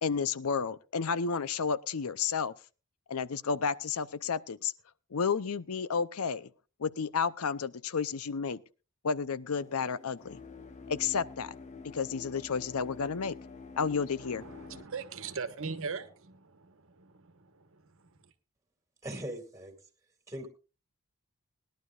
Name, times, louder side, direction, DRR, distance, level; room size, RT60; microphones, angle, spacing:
voice 1, 0.0-2.5 3.1-4.7 5.1-6.5 6.8-8.6 9.0-10.4 10.9-11.5 11.9-13.4 13.8-14.4, left 5 dB, 70° left, 0.6 m, -31 dB
sound 1, 9.5-14.8, left 4 dB, 30° left, 0.9 m, -47 dB
voice 2, 14.2-18.3, right 5 dB, 65° right, 1.2 m, -41 dB
voice 3, 19.0-19.8 20.3-20.5, right 1 dB, 15° right, 2.3 m, -39 dB
20.5 x 11.5 x 2.5 m
head